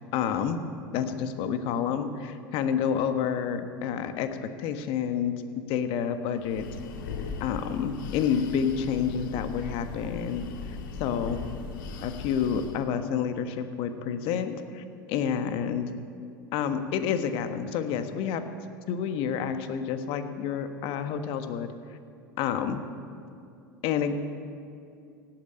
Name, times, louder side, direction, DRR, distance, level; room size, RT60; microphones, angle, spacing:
voice 1, 0.1-0.6 0.9-5.3 5.7-6.6 7.4-10.5 11.0-11.4 12.0-15.9 16.5-18.5 18.9-21.7 22.4-22.8 23.8-24.2, left 7 dB, 55° left, 8 dB, 1.4 m, -29 dB
Breathing, 6.3-12.9, left 4 dB, 70° left, 1.6 m, -38 dB
17.0 x 9.1 x 8.7 m, 2.4 s
hypercardioid pair, 80°, 11 cm